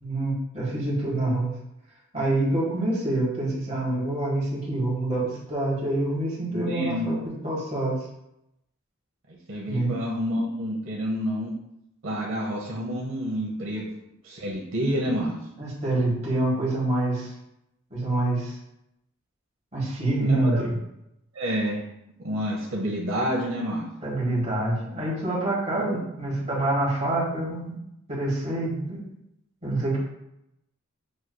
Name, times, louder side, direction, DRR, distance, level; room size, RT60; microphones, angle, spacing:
voice 1, 0.0-1.5 2.1-7.2 7.4-8.0 9.6-9.9 13.7-13.8 15.0-15.1 15.6-17.3 17.9-18.5 19.7-20.7 24.0-27.8 28.1-29.0 29.6-30.0, right 2 dB, 35° right, -5 dB, 1.5 m, -26 dB
voice 2, 6.5-7.1 9.5-11.5 12.0-13.9 14.2-15.3 20.2-20.6 21.3-21.8 22.2-23.9 25.7-26.0, equal, 70° right, -3 dB, 0.8 m, -28 dB
6.3 x 3.0 x 2.2 m, 0.83 s
head